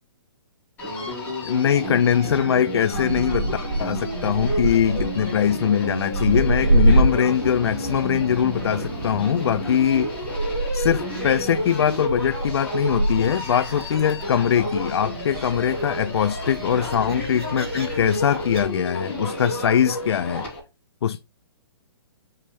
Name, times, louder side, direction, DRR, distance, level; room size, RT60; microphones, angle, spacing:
Human voice, 0.8-20.6, equal, 15° left, 3.1 m, -31 dB
voice 1, 1.4-10.1 10.7-20.5 21.0-21.2, left 9 dB, 85° left, 0.4 m, -22 dB
Gull seagull, 2.9-18.6, right 2 dB, 75° right, 2.3 m, -27 dB
5.5 x 5.5 x 3.3 m
hypercardioid pair, 165°, 13 cm